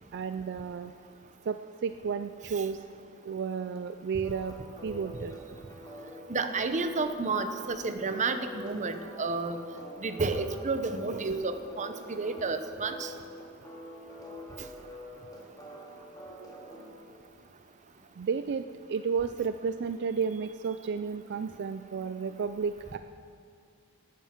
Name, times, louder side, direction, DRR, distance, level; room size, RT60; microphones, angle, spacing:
voice 1, 0.1-0.9 1.4-2.8 3.3-4.5 4.8-5.4 18.2-23.0, right 6 dB, 55° right, 9 dB, 0.4 m, -32 dB
sound 1, 4.2-16.9, left 1 dB, 15° left, 2.2 m, -46 dB
voice 2, 6.3-9.6 10.0-13.1, right 3 dB, 35° right, 9 dB, 0.7 m, -31 dB
12.0 x 9.3 x 7.3 m, 2.3 s
head